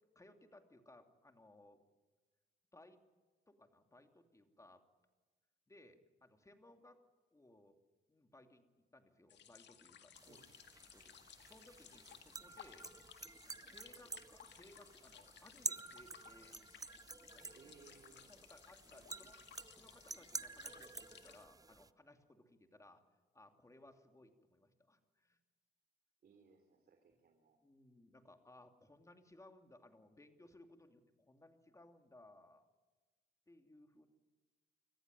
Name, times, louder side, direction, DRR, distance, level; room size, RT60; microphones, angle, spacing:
voice 1, 0.1-1.8 2.7-3.0 3.5-4.8 5.7-7.0 7.3-7.8 8.1-8.6 8.9-10.5 10.9-11.2 11.5-12.9 13.6-16.6 17.3-17.7 18.3-19.4 19.7-23.0 23.3-25.4 27.6-32.6 33.5-34.1, left 1 dB, 15° left, 6 dB, 2.7 m, -63 dB
sound 1, 9.3-21.5, left 9 dB, 65° left, 1.9 m, -60 dB
sound 2, 10.1-21.9, right 3 dB, 20° right, 0.7 m, -50 dB
voice 2, 17.6-18.2 18.9-19.2 26.2-27.6, right 5 dB, 50° right, 5 dB, 3.4 m, -64 dB
26.5 x 14.5 x 9.7 m, 1.3 s
cardioid pair, 90°, 20 cm